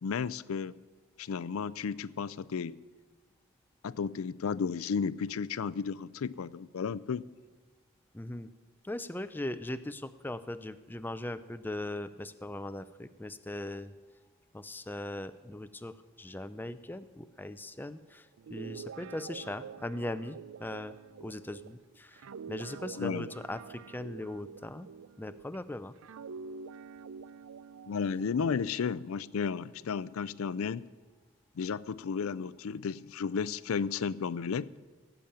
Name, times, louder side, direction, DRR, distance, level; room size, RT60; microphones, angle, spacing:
voice 1, 0.0-0.7 1.2-2.8 3.8-7.2 23.0-23.3 27.9-30.9 31.6-34.7, left 6 dB, 80° left, 19 dB, 0.4 m, -33 dB
voice 2, 8.1-8.5 8.8-13.9 14.5-24.9 25.2-25.9 28.4-28.5, left 1 dB, 10° left, 13 dB, 0.4 m, -39 dB
Guitar, 18.4-25.6 26.0-29.7, right 6 dB, 75° right, 0.4 m, -47 dB
17.0 x 7.0 x 8.9 m, 1.4 s
head